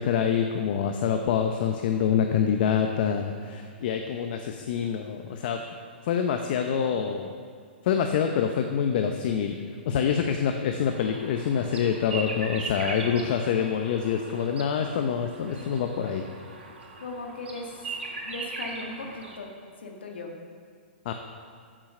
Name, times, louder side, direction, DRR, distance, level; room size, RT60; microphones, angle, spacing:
voice 1, 0.0-5.6 6.0-7.3 7.8-9.5 9.9-16.3 21.0-21.1, left 7 dB, 55° left, 5 dB, 0.7 m, -26 dB
sound 1, 10.9-19.4, right 3 dB, 80° right, 2.4 m, -39 dB
voice 2, 13.0-13.5 17.0-17.9 18.2-19.5 19.8-20.3, left 2 dB, 80° left, 2 dB, 1.7 m, -38 dB
9.5 x 7.5 x 6.7 m, 2.2 s
hypercardioid pair, 130°, 6 cm